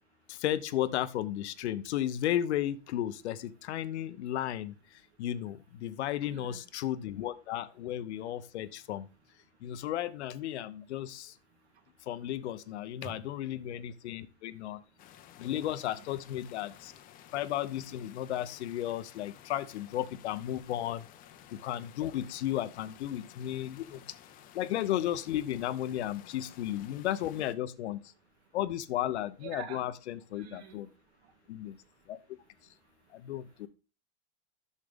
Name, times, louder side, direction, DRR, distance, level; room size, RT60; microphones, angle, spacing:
voice 1, 0.3-9.1 9.6-11.4 12.1-14.8 15.4-16.9 17.3-21.1 21.5-24.0 24.5-28.0 28.5-30.9 31.5-31.8 32.1-32.2 33.1-33.7, left 12 dB, 90° left, 14 dB, 0.8 m, -34 dB
voice 2, 6.3-6.6 13.0-13.1 29.4-29.8 30.4-30.8, right 7 dB, 75° right, 5 dB, 2.5 m, -44 dB
sound 1, 15.0-27.6, left 11 dB, 25° left, 0.6 m, -55 dB
8.4 x 6.5 x 3.6 m, 0.33 s
supercardioid pair, 155°, 33 cm